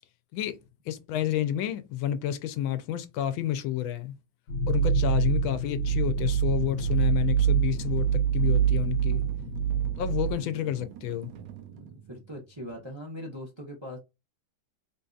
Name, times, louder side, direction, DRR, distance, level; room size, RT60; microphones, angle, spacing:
voice 1, 0.9-4.1 4.7-9.2 10.0-11.3, left 11 dB, 85° left, 1.4 m, -30 dB
sound 1, 4.5-10.3, right 7 dB, 60° left, 0.9 m, -25 dB
sound 2, 5.9-12.7, right 9 dB, 70° right, 1.2 m, -46 dB
voice 2, 11.7-14.0, equal, 25° right, 0.6 m, -42 dB
3.7 x 2.6 x 2.3 m
omnidirectional pair, 2.1 m